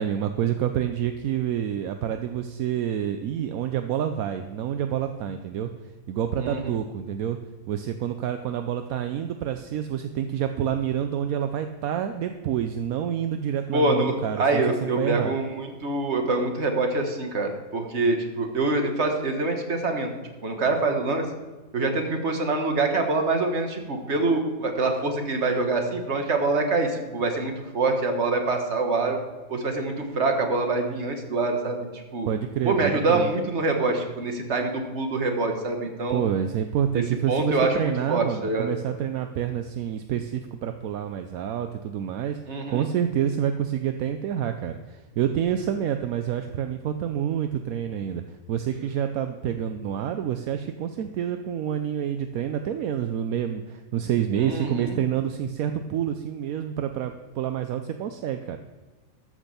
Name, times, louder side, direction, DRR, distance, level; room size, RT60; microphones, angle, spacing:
voice 1, 0.0-5.7 6.1-7.4 7.7-15.3 32.3-33.3 36.1-48.2 48.5-58.6, right 9 dB, 75° right, 8 dB, 1.1 m, -28 dB
voice 2, 6.4-6.7 13.7-20.1 20.4-21.3 21.7-29.2 29.5-32.3 32.7-36.2 37.3-38.8 42.5-42.9 54.4-55.0, right 3 dB, 50° right, 4 dB, 1.8 m, -25 dB
13.5 x 6.3 x 6.8 m, 1.3 s
omnidirectional pair, 1.5 m